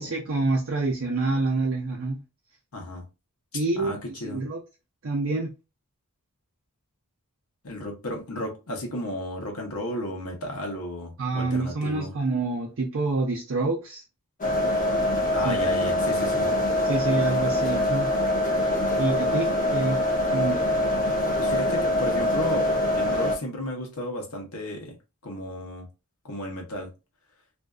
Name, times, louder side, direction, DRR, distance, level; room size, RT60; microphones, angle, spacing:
voice 1, 0.0-2.2 3.5-4.6 5.0-5.5 11.2-14.0 15.4-15.5 16.8-18.1 19.0-20.0 20.3-20.6, right 3 dB, 65° right, 0.5 m, -27 dB
voice 2, 2.7-3.1 3.8-4.4 7.6-12.2 15.3-16.5 21.4-24.9 25.2-25.9 26.2-26.9, left 1 dB, 75° left, 0.8 m, -33 dB
sound 1, 14.4-23.4, left 1 dB, 35° left, 0.7 m, -24 dB
2.5 x 2.3 x 2.3 m
head